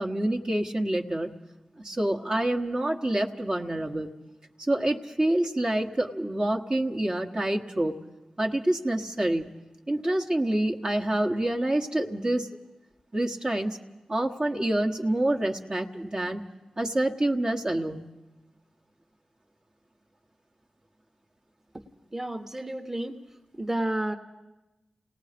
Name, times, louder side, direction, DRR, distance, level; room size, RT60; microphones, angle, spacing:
voice 1, 0.0-1.4 1.8-4.1 4.6-7.9 8.4-9.6 9.9-12.5 13.1-13.8 14.1-16.4 16.8-18.0, right 1 dB, 40° right, 1 dB, 1.3 m, -27 dB
voice 2, 22.1-23.2 23.5-24.1, right 1 dB, 20° right, 3 dB, 1.2 m, -31 dB
28.5 x 18.0 x 5.1 m, 1.0 s
cardioid pair, 45°, 2 cm